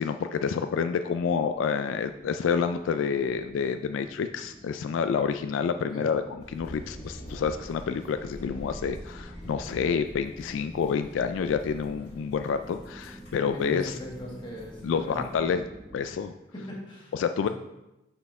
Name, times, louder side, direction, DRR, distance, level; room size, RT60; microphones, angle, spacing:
voice 1, 0.0-6.2 6.5-14.0 14.8-15.6 15.9-16.3 17.1-17.5, left 6 dB, 80° left, 8 dB, 0.3 m, -28 dB
sound 1, 1.1-16.0, equal, ahead, 0.8 m, -49 dB
sound 2, 6.4-15.4, equal, 60° left, 2.1 m, -45 dB
voice 2, 13.4-15.5 16.5-17.1 17.4-17.5, equal, 25° left, -3 dB, 1.5 m, -39 dB
5.8 x 4.1 x 5.2 m, 0.95 s
head